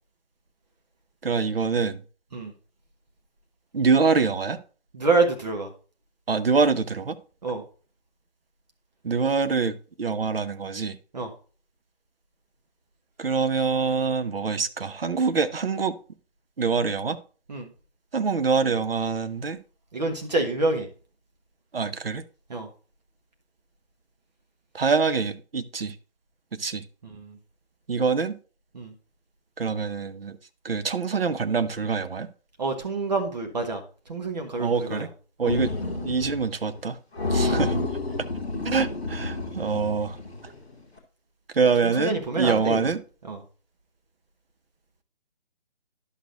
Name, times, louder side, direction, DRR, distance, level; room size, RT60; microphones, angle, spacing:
voice 1, 1.2-2.0 3.7-4.6 6.3-7.1 9.0-11.0 13.2-15.9 16.6-17.2 18.1-19.6 21.7-22.2 24.7-25.9 26.6-26.8 27.9-28.3 29.6-30.4 30.6-32.3 34.6-35.1 35.4-35.7 36.0-37.0 37.3-37.8 38.6-40.2 41.5-43.0, right 5 dB, 60° right, 0.8 m, -25 dB
voice 2, 4.9-5.7 7.4-7.6 11.1-11.3 17.5-17.7 19.9-20.9 22.5-22.7 27.0-27.4 28.7-28.9 32.6-33.8 34.1-35.1 35.4-35.6 37.4-37.6 41.8-42.9 43.3-43.4, right 3 dB, 40° right, 1.2 m, -27 dB
sound 1, 35.5-36.5 36.7-36.8 37.1-40.5, left 2 dB, 5° left, 0.6 m, -29 dB
11.0 x 6.3 x 2.5 m
figure-of-eight pair, 150°, 33 cm